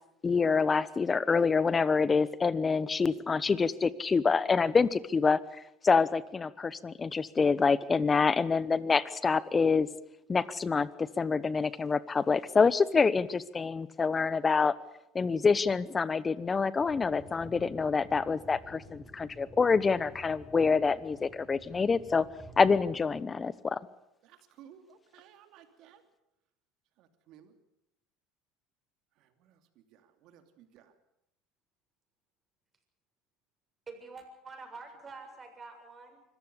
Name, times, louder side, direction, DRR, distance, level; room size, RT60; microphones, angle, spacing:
voice 1, 0.2-5.4 5.8-9.9 10.3-14.7 15.1-22.2 22.6-23.8, left 5 dB, 25° left, 18 dB, 1.1 m, -26 dB
sound 1, 16.8-23.3, equal, ahead, 4.7 m, -52 dB
voice 2, 24.2-26.0 27.0-27.5 29.2-30.9, right 9 dB, 65° right, 8 dB, 2.9 m, -57 dB
voice 3, 33.9-36.2, right 4 dB, 25° right, 4 dB, 7.0 m, -47 dB
25.5 x 14.5 x 8.5 m, 0.84 s
supercardioid pair, 95°, 0 cm